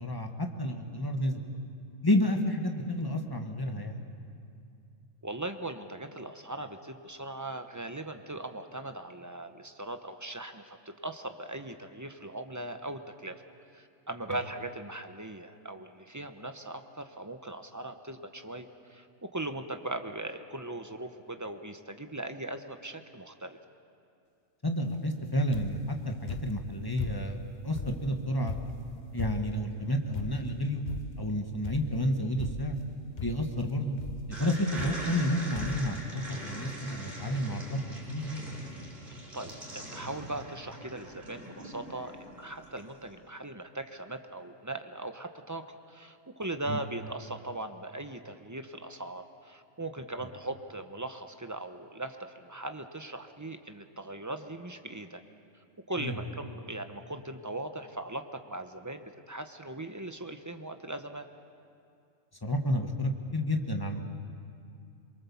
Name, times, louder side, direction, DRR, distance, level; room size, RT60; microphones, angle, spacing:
voice 1, 0.0-1.4 2.0-4.0 24.6-28.5 29.1-30.8 31.2-32.8 33.2-34.0 34.4-37.8 38.1-38.4 46.7-46.8 56.0-56.2 62.4-64.0, equal, 20° left, 4 dB, 1.5 m, -30 dB
voice 2, 5.2-13.4 13.7-23.6 29.2-29.3 39.3-55.2 55.9-61.3, right 2 dB, 15° right, 7 dB, 0.8 m, -39 dB
sound 1, 25.5-25.9 26.3-27.4 27.7-29.7 30.1-30.6 30.9-31.3 31.6-32.1 32.4-32.9 33.2-33.6 34.0-34.3 34.8-35.3 35.5-35.9 36.6-36.7 36.9-37.0, left 6 dB, 45° left, 0.7 m, -39 dB
sound 2, 34.3-42.9, right 1 dB, 45° right, 4.1 m, -42 dB
24.0 x 23.0 x 7.1 m, 2.5 s
omnidirectional pair, 1.3 m